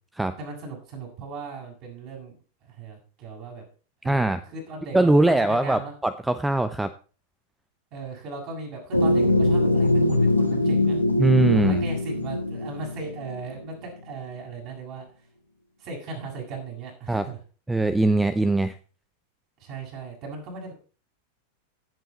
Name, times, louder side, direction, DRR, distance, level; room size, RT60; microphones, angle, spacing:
voice 1, 0.4-2.3 2.6-3.6 4.0-5.9 7.9-10.9 11.5-15.1 15.8-17.4 19.6-20.7, right 3 dB, 40° right, 0 dB, 7.0 m, -38 dB
voice 2, 4.0-4.4 4.9-6.9 11.2-11.8 17.1-17.2 17.7-18.8, right 2 dB, 5° right, 12 dB, 0.7 m, -21 dB
sound 1, 8.9-13.6, left 1 dB, 85° left, 1.6 m, -22 dB
16.5 x 8.0 x 4.3 m, 0.37 s
figure-of-eight pair, 90°, 0 cm